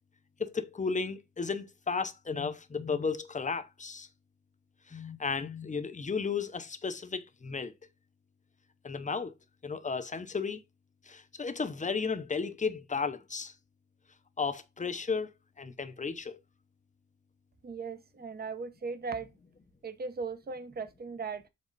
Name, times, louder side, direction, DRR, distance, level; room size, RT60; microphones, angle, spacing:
voice 1, 0.4-4.1 4.9-7.7 8.8-9.3 9.6-10.6 11.1-13.5 14.4-15.3 15.6-16.4, left 5 dB, 25° left, 0.7 m, -34 dB
voice 2, 17.6-19.3 19.8-21.5, right 4 dB, 30° right, 0.8 m, -38 dB
7.4 x 4.3 x 4.0 m
wide cardioid pair, 150°, 30 cm